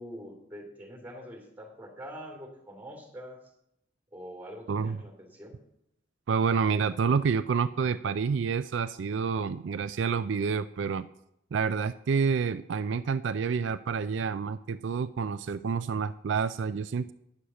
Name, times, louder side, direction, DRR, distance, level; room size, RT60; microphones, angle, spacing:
voice 1, 0.0-3.4 4.1-5.6, equal, 10° right, 0 dB, 3.1 m, -44 dB
voice 2, 6.3-11.1 11.5-17.1, right 5 dB, 70° right, 12 dB, 0.4 m, -28 dB
10.0 x 6.4 x 6.9 m, 0.78 s
head